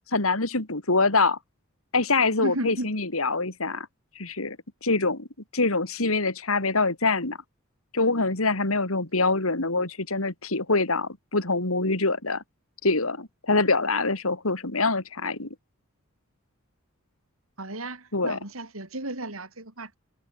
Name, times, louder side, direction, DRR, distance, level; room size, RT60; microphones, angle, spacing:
voice 1, 0.1-1.4 1.9-3.9 4.1-5.3 5.5-7.4 7.9-12.4 12.8-15.5 18.1-18.4, left 3 dB, 75° left, 3.3 m, -25 dB
voice 2, 2.4-2.9 17.6-19.9, right 1 dB, 70° right, 6.1 m, -34 dB
head